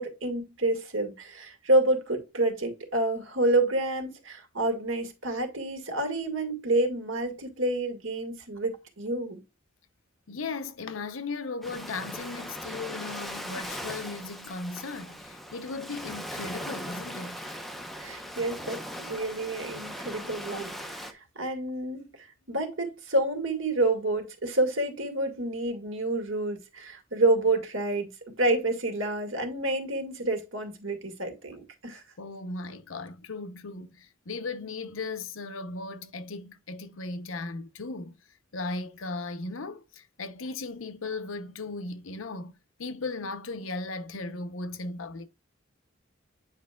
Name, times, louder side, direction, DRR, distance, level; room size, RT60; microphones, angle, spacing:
voice 1, 0.0-9.4 18.0-32.0, right 2 dB, 85° right, 2.0 m, -28 dB
voice 2, 10.3-17.4 32.2-38.1 38.5-45.3, left 3 dB, 85° left, 0.8 m, -37 dB
Ocean, 11.6-21.1, equal, ahead, 0.9 m, -39 dB
9.0 x 5.2 x 2.4 m
head